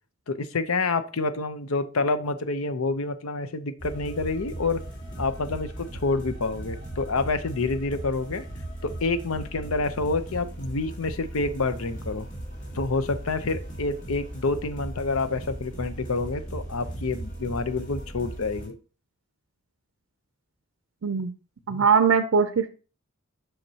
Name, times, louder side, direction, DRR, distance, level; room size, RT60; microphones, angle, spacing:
voice 1, 0.3-4.8 5.2-8.4 8.8-12.3 12.7-18.7 21.7-21.9, left 3 dB, 80° left, 11 dB, 0.7 m, -28 dB
sound 1, 3.8-18.7, right 1 dB, 55° left, 3.1 m, -37 dB
voice 2, 21.7-22.7, right 6 dB, 65° right, 10 dB, 0.5 m, -21 dB
8.0 x 5.8 x 2.8 m, 0.36 s
head